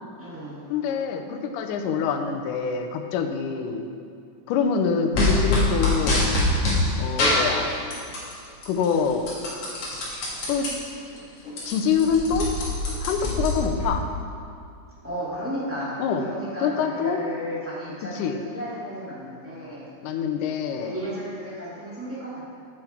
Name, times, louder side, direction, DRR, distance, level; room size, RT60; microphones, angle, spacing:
voice 1, 0.2-0.6 15.0-19.9 20.8-22.5, equal, 5° right, -10 dB, 1.3 m, -34 dB
voice 2, 0.7-3.9 4.5-6.3 7.0-7.7 8.7-9.3 10.5-10.7 11.7-12.5 13.0-14.0 16.0-16.3 16.6-17.2 18.1-18.4 20.0-21.0, left 6 dB, 85° left, 5 dB, 2.2 m, -25 dB
sound 1, 5.1-6.8 7.2-8.3 8.6-10.7 11.1-11.2 11.4-13.9, left 2 dB, 50° left, 2.5 m, -24 dB
7.8 x 7.8 x 4.3 m, 2.4 s
omnidirectional pair, 3.6 m